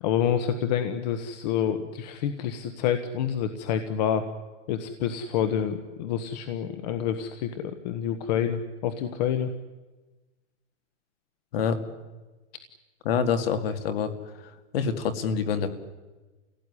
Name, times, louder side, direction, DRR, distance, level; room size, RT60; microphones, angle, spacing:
voice 1, 0.0-4.3 4.7-9.5, left 9 dB, 35° left, 9 dB, 1.2 m, -28 dB
voice 2, 13.0-14.1 14.4-15.7, left 6 dB, 55° left, 9 dB, 2.5 m, -26 dB
28.0 x 17.0 x 9.9 m, 1.2 s
supercardioid pair, 170°, 36 cm